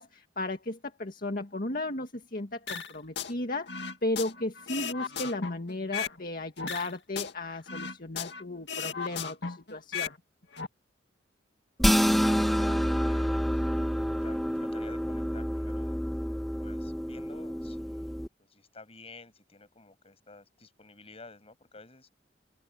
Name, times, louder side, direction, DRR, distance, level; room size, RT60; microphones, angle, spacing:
voice 1, 0.0-3.7 4.0-10.1, left 2 dB, 50° left, 2.0 m, -35 dB
sound 1, 2.7-3.3 3.7-6.2 6.6-8.4 8.7-10.2 10.4-10.7, left 6 dB, 65° left, 2.2 m, -36 dB
sound 2, 11.8-18.3, equal, ahead, 1.8 m, -28 dB
voice 2, 12.1-13.6 14.2-16.0 16.6-22.1, left 3 dB, 35° left, 7.1 m, -51 dB
head